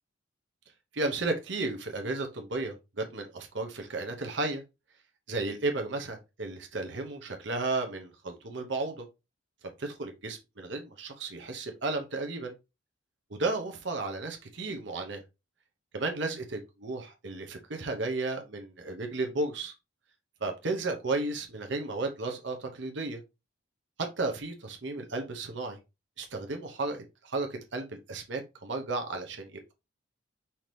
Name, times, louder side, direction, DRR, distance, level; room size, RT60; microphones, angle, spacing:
voice 1, 0.9-4.6 5.3-9.1 9.8-12.5 13.3-15.2 15.9-19.7 20.4-23.2 24.2-25.8 26.2-29.7, right 3 dB, 65° right, 0.9 m, -33 dB
5.7 x 2.9 x 3.2 m
head